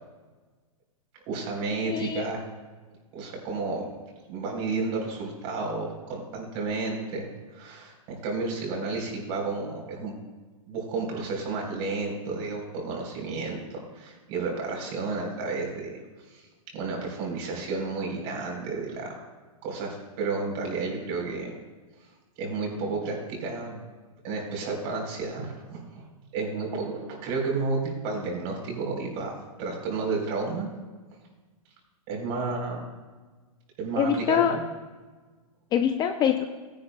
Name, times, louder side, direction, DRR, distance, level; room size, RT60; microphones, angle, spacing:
voice 1, 1.3-2.4 3.1-3.9 4.3-7.3 7.5-10.1 10.7-15.9 16.3-16.4 16.7-19.1 19.6-21.5 22.4-23.8 24.2-26.0 26.3-29.3 29.6-30.7 32.1-32.8 33.8-34.6, right 3 dB, 45° right, 0 dB, 3.7 m, -31 dB
voice 2, 1.8-2.3 34.0-34.6 35.7-36.4, left 8 dB, 25° left, 7 dB, 0.5 m, -24 dB
16.5 x 10.5 x 2.2 m, 1.3 s
hypercardioid pair, 130°, 18 cm